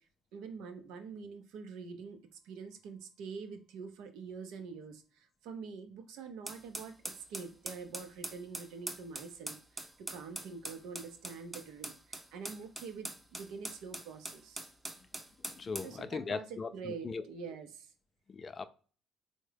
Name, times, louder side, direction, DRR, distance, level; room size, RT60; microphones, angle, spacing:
voice 1, 0.3-14.7 15.8-17.9, right 5 dB, 80° right, 0.5 m, -46 dB
sound 1, 6.5-15.9, right 1 dB, 20° right, 0.6 m, -43 dB
voice 2, 15.4-17.2 18.3-18.7, left 4 dB, 40° left, 0.3 m, -39 dB
3.5 x 2.1 x 3.3 m
supercardioid pair, 70°, 0 cm